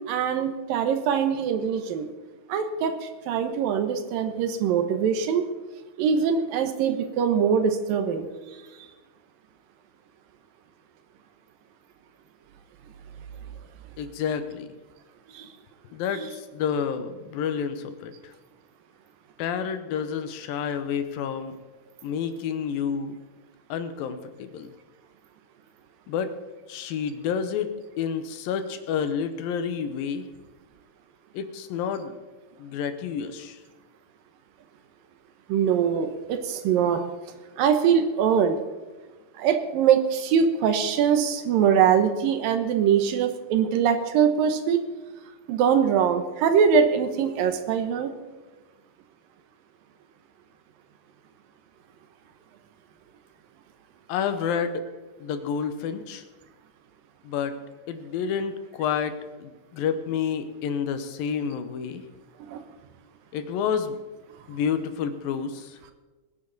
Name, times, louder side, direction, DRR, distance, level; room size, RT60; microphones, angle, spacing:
voice 1, 0.1-2.1 2.5-5.5 6.0-8.6 15.3-15.5 16.1-16.3 35.5-37.0 37.6-38.6 39.4-44.8 45.5-48.1 62.4-62.6, right 7 dB, 80° right, 8 dB, 2.8 m, -23 dB
voice 2, 14.0-14.7 15.9-18.3 19.4-21.5 22.0-23.2 23.7-24.7 26.1-26.4 26.7-30.3 31.3-32.1 32.6-33.6 54.1-54.8 55.2-56.2 57.2-57.6 57.9-62.0 63.3-64.0 64.5-65.8, left 7 dB, 80° left, 9 dB, 2.8 m, -29 dB
21.0 x 10.0 x 4.0 m, 1.2 s
omnidirectional pair, 4.1 m